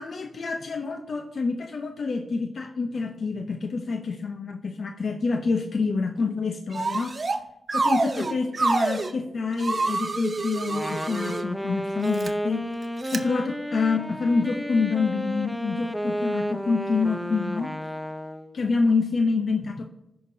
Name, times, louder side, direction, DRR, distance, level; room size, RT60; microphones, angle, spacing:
voice 1, 0.0-7.2 7.7-12.7 13.1-17.7 18.5-19.9, left 4 dB, 65° left, 5 dB, 0.6 m, -27 dB
sound 1, 6.7-7.4 7.7-9.1 9.6-11.4 12.0-12.3 13.0-13.2, right 3 dB, 45° right, 0.8 m, -27 dB
Wind instrument woodwind instrument, 10.6-18.6, equal, 5° left, 0.5 m, -31 dB
15.0 x 5.7 x 2.7 m, 0.94 s
cardioid pair, 80°, 0 cm